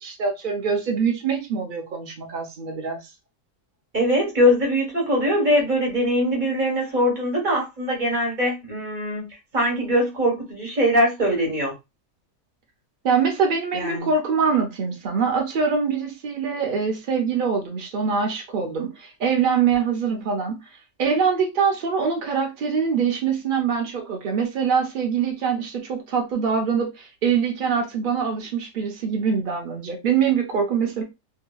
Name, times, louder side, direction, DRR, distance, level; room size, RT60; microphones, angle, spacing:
voice 1, 0.0-3.0 13.0-20.6 21.0-31.0, right 6 dB, 75° right, 0.4 m, -24 dB
voice 2, 3.9-9.3 9.5-11.8 13.7-14.1 20.2-20.3, equal, 35° right, 1.1 m, -22 dB
2.8 x 2.6 x 2.2 m
omnidirectional pair, 1.6 m